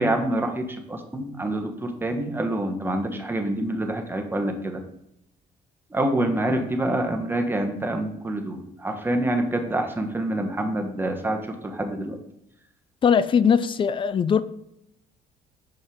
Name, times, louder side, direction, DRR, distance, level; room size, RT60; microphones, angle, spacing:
voice 1, 0.0-4.8 5.9-12.2, right 1 dB, 10° right, 1.0 m, -26 dB
voice 2, 13.0-14.4, left 7 dB, 30° left, 0.3 m, -20 dB
6.3 x 5.4 x 3.6 m
cardioid pair, 110°, 17 cm